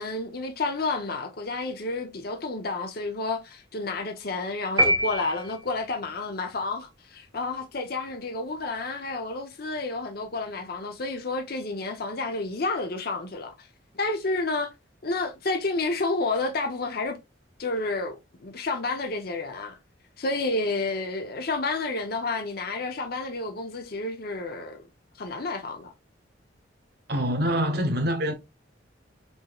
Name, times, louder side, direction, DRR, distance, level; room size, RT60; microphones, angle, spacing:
voice 1, 0.0-13.7 13.9-14.7 15.0-17.2 17.6-19.8 20.2-24.8 25.2-25.9, left 3 dB, 50° left, 0.7 m, -30 dB
sound 1, 4.8-6.0, equal, 15° right, 1.0 m, -25 dB
voice 2, 27.1-28.3, equal, 55° right, 1.1 m, -25 dB
5.3 x 3.0 x 2.3 m
head